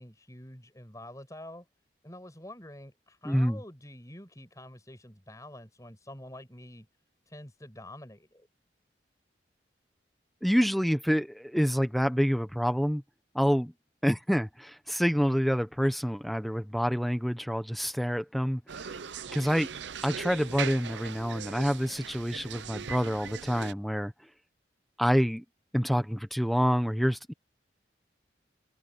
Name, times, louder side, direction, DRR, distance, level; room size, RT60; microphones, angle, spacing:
voice 1, 0.0-1.7 2.0-6.9 7.3-8.5, left 1 dB, 20° left, 6.5 m, -47 dB
voice 2, 3.2-3.6 10.4-13.0 13.3-13.7 14.0-18.9 19.3-19.7 20.0-24.1 25.0-25.4 25.7-27.3, equal, ahead, 1.2 m, -27 dB
sound 1, 18.7-23.7, right 7 dB, 80° right, 0.7 m, -39 dB
head